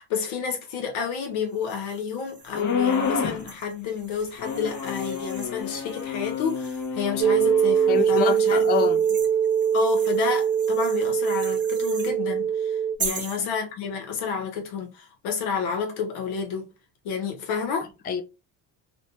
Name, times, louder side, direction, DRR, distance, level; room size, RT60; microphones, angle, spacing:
voice 1, 0.0-8.9 9.7-16.7 17.0-17.9, left 6 dB, 80° left, 1.0 m, -30 dB
sound 1, 1.5-7.1 7.7-12.2 13.0-13.4, right 5 dB, 25° right, 0.8 m, -40 dB
sound 2, 2.5-3.5 4.4-8.0, left 6 dB, 40° left, 0.8 m, -29 dB
sound 3, 7.2-13.0, right 8 dB, 55° right, 0.6 m, -22 dB
voice 2, 7.9-9.0 13.0-13.5 18.1-18.2, left 8 dB, 20° left, 0.4 m, -27 dB
2.5 x 2.2 x 2.8 m
supercardioid pair, 80°, 47 cm